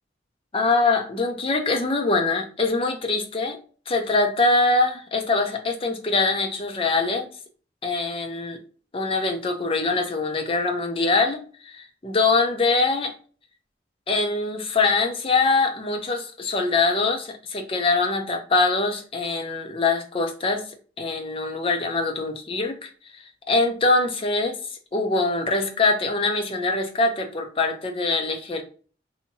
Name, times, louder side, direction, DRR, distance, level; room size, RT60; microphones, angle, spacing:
voice 1, 0.5-3.6 3.9-7.3 7.8-8.6 8.9-13.1 14.1-20.6 21.0-22.9 23.5-24.6 24.9-28.6, left 3 dB, 30° left, 4 dB, 0.5 m, -23 dB
2.8 x 2.6 x 2.7 m, 0.40 s
head